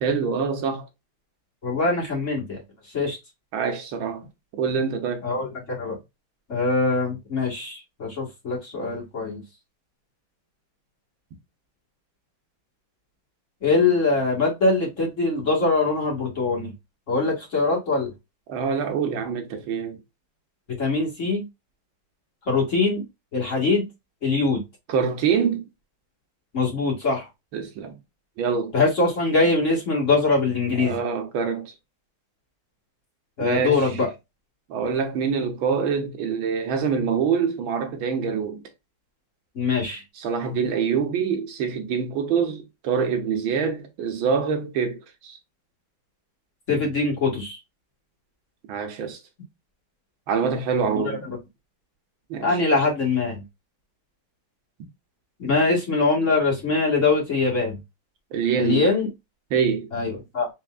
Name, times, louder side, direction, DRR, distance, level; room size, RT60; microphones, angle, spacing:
voice 1, 0.0-0.9 3.5-4.2 4.5-5.2 18.5-20.0 24.9-25.7 27.5-28.0 28.4-28.7 30.8-31.7 33.4-34.0 34.7-38.6 40.2-45.4 48.7-49.2 50.3-51.2 52.3-52.6 58.3-58.9 59.5-59.9, right 6 dB, 70° right, 1.6 m, -25 dB
voice 2, 1.6-2.6 2.9-3.2 5.2-6.0 6.5-9.4 13.6-16.7 17.1-18.1 20.8-21.4 22.5-23.0 23.3-23.9 24.2-24.6 26.5-27.3 28.7-31.0 33.4-34.1 39.6-40.0 46.7-47.6 51.0-51.4 52.4-53.4 55.4-57.8 58.6-59.1 59.9-60.5, left 3 dB, 35° left, 1.8 m, -23 dB
4.3 x 4.1 x 2.4 m
omnidirectional pair, 2.4 m